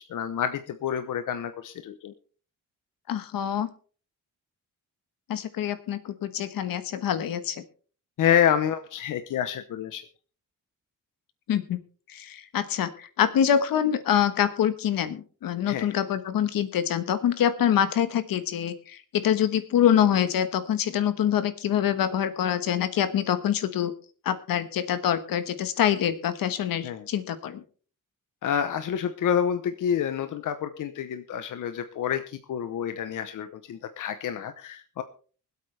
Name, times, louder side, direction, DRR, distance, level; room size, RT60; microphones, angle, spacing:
voice 1, 0.0-2.1 8.2-10.0 15.7-15.9 26.8-27.1 28.4-35.0, left 9 dB, 65° left, 9 dB, 1.0 m, -28 dB
voice 2, 3.1-3.7 5.3-7.6 11.5-11.8 12.1-23.9 24.2-27.6, left 9 dB, 85° left, 12 dB, 1.3 m, -25 dB
24.5 x 8.4 x 3.4 m, 0.41 s
wide cardioid pair, 170°, 34 cm